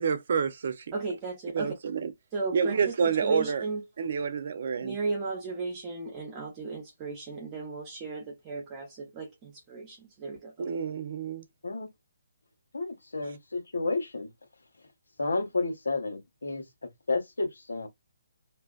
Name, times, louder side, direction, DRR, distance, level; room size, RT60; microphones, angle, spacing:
voice 1, 0.0-0.8 1.5-2.1 2.5-3.6 4.0-4.9 10.6-11.4, right 6 dB, 55° right, 0.6 m, -28 dB
voice 2, 0.9-1.7 2.3-3.8 4.8-10.8, right 3 dB, 25° right, 0.9 m, -35 dB
voice 3, 12.7-14.3 15.2-16.6 17.1-17.9, left 3 dB, 85° left, 1.1 m, -31 dB
2.5 x 2.2 x 2.4 m
figure-of-eight pair, 145°, 0 cm